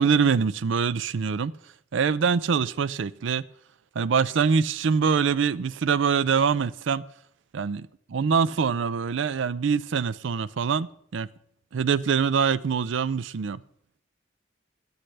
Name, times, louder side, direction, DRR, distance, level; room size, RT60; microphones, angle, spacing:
voice 1, 0.0-1.5 1.9-3.4 4.0-7.0 7.5-11.3 11.7-13.6, right 6 dB, 75° right, 0.4 m, -24 dB
17.5 x 12.0 x 3.3 m
head